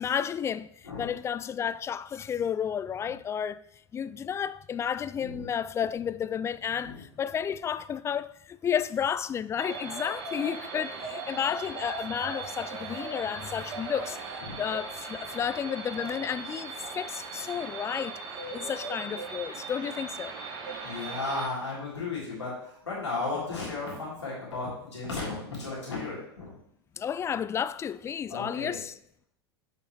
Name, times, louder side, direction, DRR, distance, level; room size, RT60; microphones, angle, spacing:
voice 1, 0.0-3.6 3.9-14.2 14.6-18.2 18.5-20.3 27.0-29.0, left 8 dB, 20° left, 0.3 m, -32 dB
sound 1, 9.6-21.5, right 4 dB, 50° right, 2.5 m, -38 dB
voice 2, 20.8-26.5 28.3-28.8, left 3 dB, 90° left, 3.5 m, -34 dB
10.5 x 5.7 x 3.1 m
hypercardioid pair, 90°, 14 cm